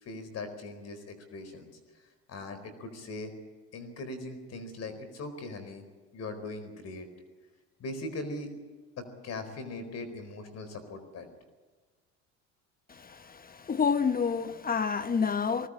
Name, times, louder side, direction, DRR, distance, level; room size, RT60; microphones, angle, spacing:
voice 1, 0.0-1.7 2.0-3.3 3.7-5.8 6.1-7.1 7.8-8.5 9.0-11.3, left 2 dB, 50° left, 4.5 m, -40 dB
voice 2, 12.9-15.7, left 6 dB, 25° left, 1.1 m, -29 dB
20.0 x 18.5 x 8.8 m
supercardioid pair, 85°, 32 cm